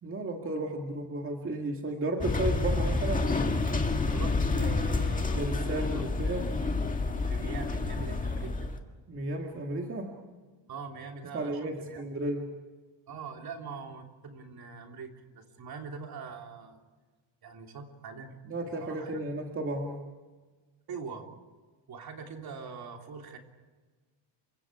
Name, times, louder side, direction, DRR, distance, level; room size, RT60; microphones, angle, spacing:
voice 1, 0.0-3.3 5.3-6.5 9.1-10.1 11.3-12.5 18.5-20.0, right 2 dB, 25° right, 2 dB, 1.9 m, -33 dB
sound 1, 2.2-8.8, left 3 dB, 15° left, 1.8 m, -29 dB
voice 2, 4.1-6.4 7.3-8.7 10.7-11.6 11.8-12.0 13.1-16.8 17.4-18.4 18.8-19.2 20.9-21.3 21.9-23.4, right 5 dB, 45° right, 3 dB, 3.3 m, -43 dB
29.5 x 25.0 x 4.9 m, 1.4 s
cardioid pair, 170°, 49 cm